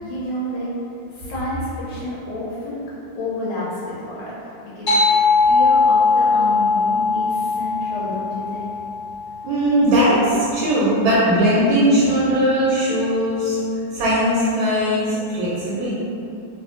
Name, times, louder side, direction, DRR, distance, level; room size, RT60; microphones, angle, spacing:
voice 1, 0.0-0.7 1.1-2.8 3.1-5.0 5.4-8.8, left 1 dB, 90° left, -8 dB, 1.6 m, -30 dB
sound 1, 4.9-9.8, left 4 dB, 60° left, 0.5 m, -19 dB
voice 2, 9.4-13.6 13.9-15.9, equal, 75° right, -10 dB, 1.5 m, -19 dB
3.4 x 3.1 x 2.4 m, 2.6 s
omnidirectional pair, 2.3 m